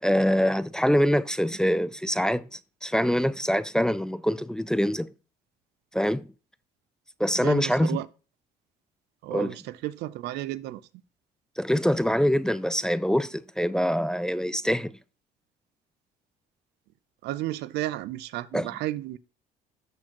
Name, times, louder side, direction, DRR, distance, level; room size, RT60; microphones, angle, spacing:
voice 1, 0.0-2.5 2.8-5.1 5.9-6.3 7.2-8.0 9.3-9.6 11.6-15.0 18.5-18.7, equal, 5° left, 0.4 m, -24 dB
voice 2, 7.4-8.1 9.2-10.8 17.2-19.2, right 15 dB, 85° right, 0.6 m, -32 dB
13.5 x 4.5 x 2.9 m
cardioid pair, 110°, 17 cm